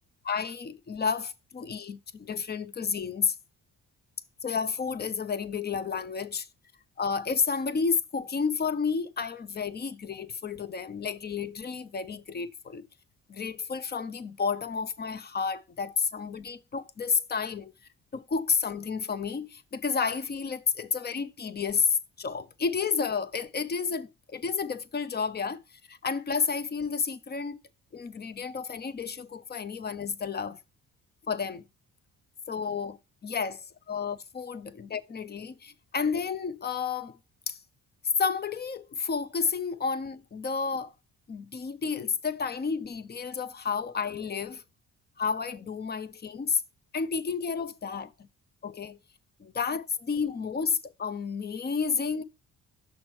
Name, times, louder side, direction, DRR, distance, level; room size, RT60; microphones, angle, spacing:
voice 1, 0.2-3.3 4.4-6.5 7.0-12.8 13.3-17.7 18.1-25.6 25.9-27.6 27.9-30.6 31.3-31.6 32.5-33.0 33.2-33.6 33.9-37.2 37.5-37.6 38.2-40.9 41.3-44.6 45.2-46.6 46.9-48.3 48.6-49.0 49.6-52.2, left 5 dB, 35° left, 0.7 m, -31 dB
6.0 x 4.4 x 4.6 m
cardioid pair, 90°, 30 cm